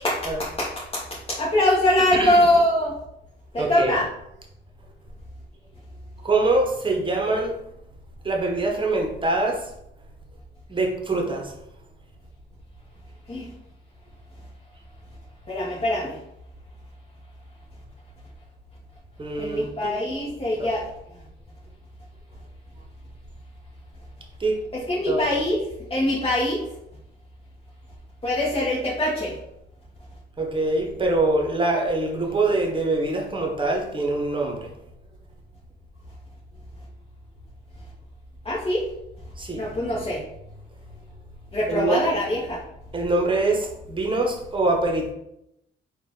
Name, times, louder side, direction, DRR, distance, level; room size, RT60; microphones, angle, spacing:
voice 1, 0.0-1.0 1.3-2.9 3.5-4.1 13.3-13.5 15.5-16.2 19.4-20.8 24.7-25.6 25.9-26.6 28.2-29.3 38.4-38.8 39.6-40.2 41.5-42.6, left 1 dB, 30° left, -7 dB, 1.2 m, -23 dB
voice 2, 3.6-4.0 6.2-7.5 8.2-9.6 10.7-11.5 19.2-19.9 20.6-20.7 24.4-24.6 25.1-25.2 30.4-34.7 39.4-39.6 41.7-42.1 42.9-45.1, right 2 dB, 25° right, 1 dB, 1.0 m, -24 dB
4.1 x 2.5 x 3.7 m, 0.80 s
cardioid pair, 90°, 20 cm